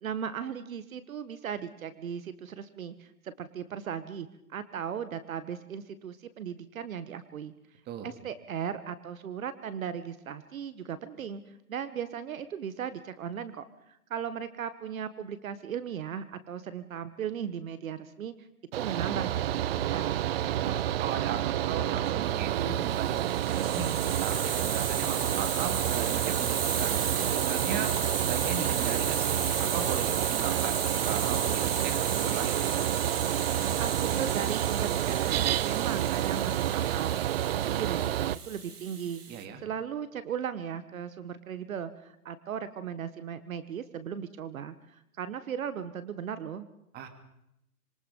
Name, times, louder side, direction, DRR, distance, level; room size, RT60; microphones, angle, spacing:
voice 1, 0.0-7.5 8.0-11.4 11.7-18.5 18.7-20.2 33.8-37.1 37.4-46.7, right 8 dB, 60° right, 13 dB, 1.6 m, -37 dB
Mechanical fan, 18.7-38.4, right 11 dB, 40° right, 0.7 m, -29 dB
voice 2, 20.6-27.0 27.4-27.9 28.2-30.8 31.1-32.6 39.3-39.6 46.9-47.1, right 7 dB, 20° right, 7 dB, 2.7 m, -38 dB
Hiss, 22.8-39.4, right 5 dB, 85° right, 2.8 m, -34 dB
26.0 x 23.0 x 5.5 m, 0.79 s
hypercardioid pair, 140°, 45 cm